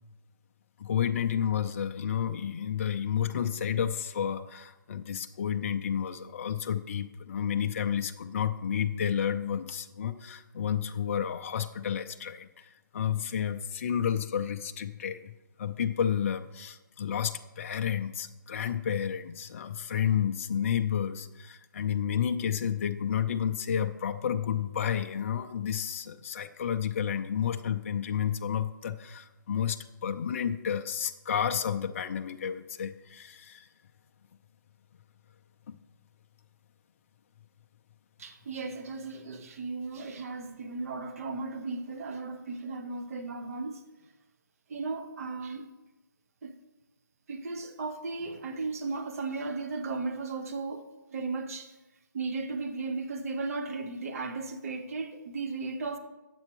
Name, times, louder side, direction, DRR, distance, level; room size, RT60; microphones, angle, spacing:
voice 1, 0.8-33.7 35.7-35.8, left 8 dB, 40° left, 0.4 m, -31 dB
voice 2, 38.2-43.8 44.7-45.7 46.4-46.6 47.3-51.8 52.1-56.0, right 3 dB, 45° right, 0.9 m, -36 dB
9.5 x 7.7 x 4.6 m
hypercardioid pair, 160°, 11 cm